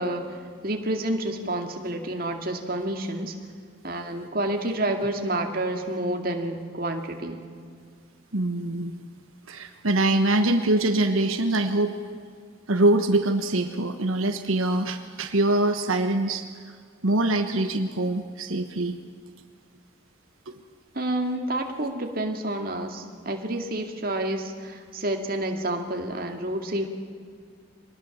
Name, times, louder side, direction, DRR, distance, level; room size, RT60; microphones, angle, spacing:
voice 1, 0.0-3.3 3.8-7.4 20.9-26.9, right 1 dB, 45° right, 3 dB, 2.3 m, -29 dB
voice 2, 8.3-8.9 9.5-12.0 12.7-16.4 17.0-19.0 20.5-20.6, right 2 dB, 90° right, 6 dB, 1.3 m, -23 dB
24.5 x 19.5 x 7.3 m, 2.1 s
head